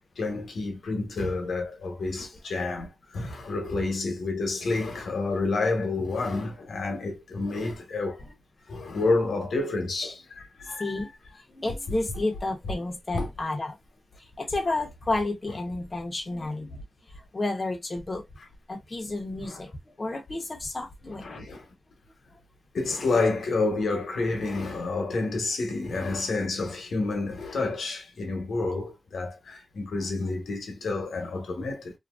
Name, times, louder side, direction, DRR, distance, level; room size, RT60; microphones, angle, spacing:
voice 1, 0.2-8.2 8.7-11.0 13.1-13.3 19.5-19.6 21.2-21.6 22.7-31.9, left 3 dB, 90° left, 0.9 m, -29 dB
voice 2, 10.6-11.1 11.4-13.8 14.2-16.8 17.1-18.2 18.7-21.3, left 2 dB, 30° left, 0.7 m, -31 dB
2.7 x 2.5 x 2.3 m
wide cardioid pair, 105°, 0 cm